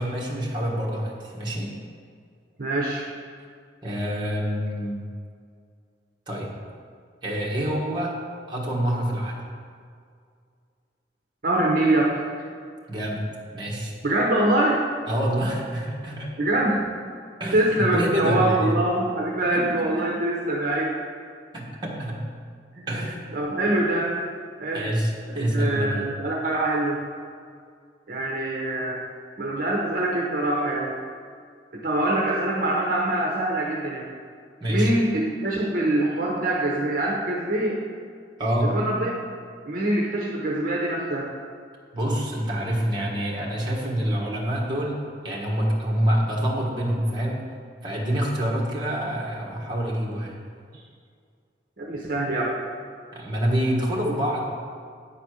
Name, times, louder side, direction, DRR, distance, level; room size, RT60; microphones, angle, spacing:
voice 1, 0.0-1.7 3.8-5.0 6.3-6.5 7.2-8.1 8.5-9.5 12.9-13.2 13.5-13.9 15.1-16.3 17.4-18.7 19.5-20.1 21.5-22.2 22.9-23.4 24.7-26.1 34.6-34.9 38.4-38.8 41.9-45.0 45.2-47.4 47.8-50.4 53.1-54.4, equal, 25° right, -3 dB, 1.4 m, -26 dB
voice 2, 2.6-3.0 11.4-12.5 14.0-14.8 16.4-16.9 17.5-20.9 22.8-22.9 23.3-24.2 24.6-24.9 25.3-27.0 28.1-29.0 29.4-30.9 31.8-34.1 34.7-37.8 38.6-39.1 39.6-41.3 51.8-52.6 54.0-54.1, right 1 dB, 50° right, -3 dB, 0.9 m, -24 dB
9.3 x 4.2 x 6.3 m, 2.2 s
head